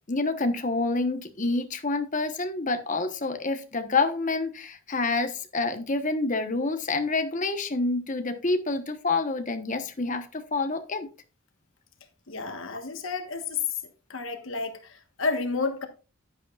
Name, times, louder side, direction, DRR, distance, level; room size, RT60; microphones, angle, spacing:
voice 1, 0.1-11.1, left 3 dB, 35° left, 1.1 m, -28 dB
voice 2, 12.3-13.6 14.1-15.9, left 4 dB, 65° left, 1.3 m, -31 dB
10.5 x 9.7 x 2.4 m
head